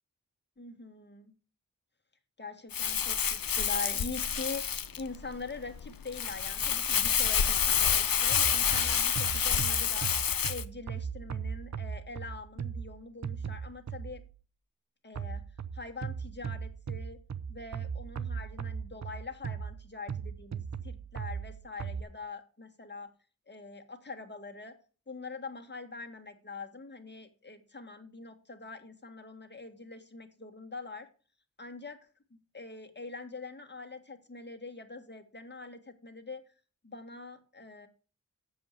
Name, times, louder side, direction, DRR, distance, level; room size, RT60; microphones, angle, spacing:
voice 1, 0.6-1.3 2.4-10.2 10.5-14.2 15.0-15.4 15.7-17.2 17.5-23.1 23.5-24.8 25.1-31.1 31.6-32.0 32.3-36.4 36.8-37.9, left 3 dB, 30° left, 4 dB, 1.9 m, -43 dB
Crumpling crinkling, 2.7-10.6, left 8 dB, 85° left, 0.8 m, -28 dB
sound 1, 8.3-14.4 15.2-22.0, right 7 dB, 55° right, 0.7 m, -38 dB
7.7 x 7.2 x 6.7 m, 0.37 s
wide cardioid pair, 85°, 34 cm